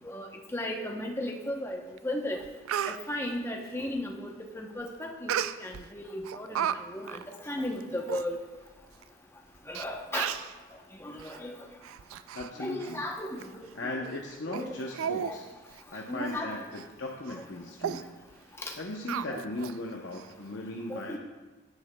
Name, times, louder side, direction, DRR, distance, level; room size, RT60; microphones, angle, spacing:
voice 1, 0.0-2.4 2.8-8.4 9.7-10.3 11.0-11.6 12.6-13.7 14.0-14.1 14.5-14.8 15.2-15.4 16.1-16.6 17.9-18.0 18.6-18.7 19.3-19.4 20.9-21.2, left 1 dB, 10° left, 1 dB, 0.7 m, -36 dB
Speech, 2.0-2.1 2.4-3.0 5.3-5.8 6.2-6.8 7.1-7.2 7.8-7.9 8.1-8.2 9.0-9.1 9.7-9.8 10.1-10.5 11.2-11.4 11.8-12.5 12.8-13.0 13.4-13.5 14.0-14.2 14.5-14.6 14.9-15.3 15.7-15.8 16.2-16.4 16.7-16.9 17.3-17.4 17.8-18.0 19.1-19.7 20.1-20.2, right 9 dB, 90° right, 0.3 m, -33 dB
voice 2, 12.3-13.1 13.7-15.5 15.9-18.1 18.5-21.2, left 2 dB, 60° left, 0 dB, 0.7 m, -38 dB
10.5 x 9.5 x 2.2 m, 1.2 s
head